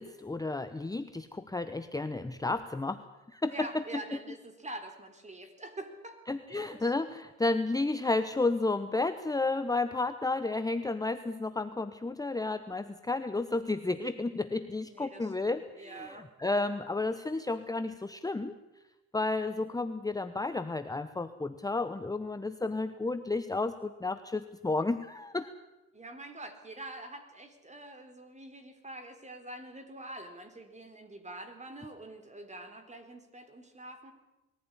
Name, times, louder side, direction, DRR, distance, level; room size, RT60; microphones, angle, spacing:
voice 1, 0.0-3.0 3.3-3.8 6.3-18.5 19.1-25.5, left 3 dB, 10° left, 10 dB, 0.9 m, -32 dB
voice 2, 3.5-6.2 6.5-7.1 14.9-16.2 25.9-34.1, right 1 dB, 25° right, 7 dB, 3.9 m, -45 dB
21.5 x 15.0 x 9.8 m, 1.0 s
cardioid pair, 90°, 30 cm